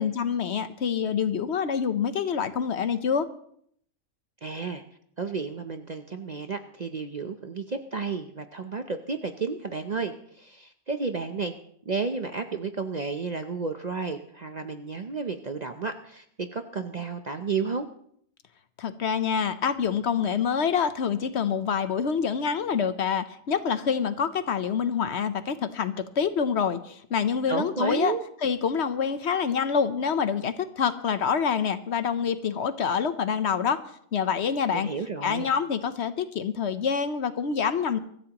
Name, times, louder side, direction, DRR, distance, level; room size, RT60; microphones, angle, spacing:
voice 1, 0.0-3.3 18.8-28.1 28.4-33.8 34.1-34.9 35.2-38.0, left 6 dB, 60° left, 11 dB, 1.0 m, -26 dB
voice 2, 4.4-4.8 5.2-11.6 11.9-17.9 27.5-28.2 34.7-35.5, right 4 dB, 45° right, 7 dB, 0.6 m, -32 dB
23.5 x 14.0 x 3.0 m, 0.66 s
omnidirectional pair, 1.4 m